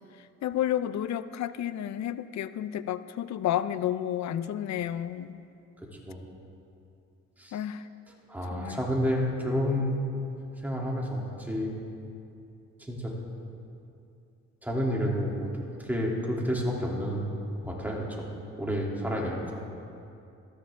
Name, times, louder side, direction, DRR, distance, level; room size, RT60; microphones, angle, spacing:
voice 1, 0.4-5.4 7.5-7.8 8.5-8.8, left 11 dB, 65° left, 14 dB, 0.6 m, -31 dB
voice 2, 5.8-6.2 7.4-7.6 8.3-10.0 10.6-11.7 12.8-13.1 14.6-17.3 17.6-18.3 18.6-19.6, equal, 5° right, -3 dB, 3.0 m, -30 dB
18.5 x 13.5 x 3.7 m, 2.6 s
cardioid pair, 90°, 30 cm